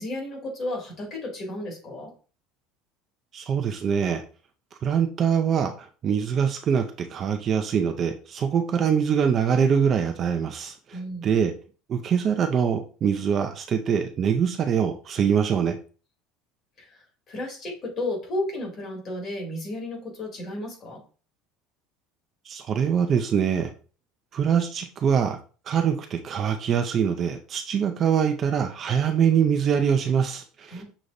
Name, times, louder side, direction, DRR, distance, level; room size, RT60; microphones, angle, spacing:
voice 1, 0.0-2.1 10.9-11.3 16.8-21.0 30.7-30.8, left 1 dB, 35° left, 0 dB, 2.2 m, -33 dB
voice 2, 3.3-4.2 4.8-11.5 11.9-15.8 22.5-23.7 24.3-25.4 25.7-30.8, right 7 dB, 35° right, 5 dB, 0.5 m, -24 dB
6.5 x 3.0 x 2.6 m, 0.37 s
cardioid pair, 145°, 0 cm